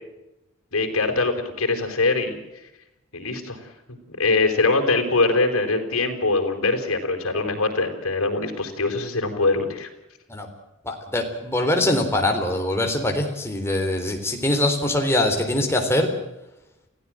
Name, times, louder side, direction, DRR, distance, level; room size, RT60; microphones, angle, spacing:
voice 1, 0.7-2.4 3.1-3.6 4.2-9.9, left 3 dB, 80° left, 3 dB, 4.5 m, -22 dB
voice 2, 10.9-16.1, left 1 dB, 10° left, 3 dB, 3.7 m, -23 dB
29.0 x 16.0 x 7.7 m, 0.92 s
head